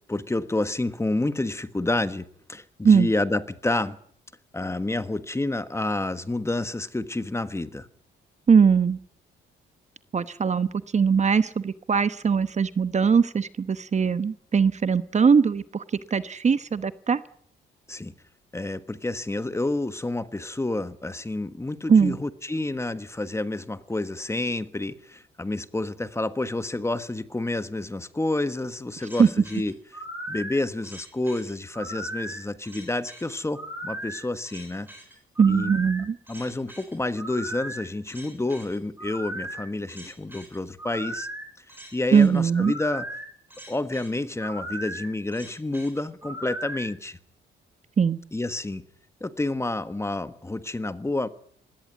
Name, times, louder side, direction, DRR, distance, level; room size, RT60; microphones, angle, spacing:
voice 1, 0.1-4.0 4.5-7.9 17.9-18.1 18.5-29.7 30.3-34.9 35.5-35.7 36.3-41.3 41.9-43.1 43.7-47.2 48.3-48.8 49.2-51.3, left 2 dB, 15° left, 12 dB, 1.4 m, -29 dB
voice 2, 8.5-9.0 10.1-10.7 10.9-15.8 16.1-17.2 21.9-22.2 29.2-29.3 35.4-36.2 42.1-42.7 48.0-48.2, right 6 dB, 35° right, 13 dB, 1.0 m, -20 dB
sound 1, 29.0-46.9, right 1 dB, 10° right, 7.2 m, -38 dB
20.5 x 17.0 x 9.3 m, 0.63 s
cardioid pair, 90°, 20 cm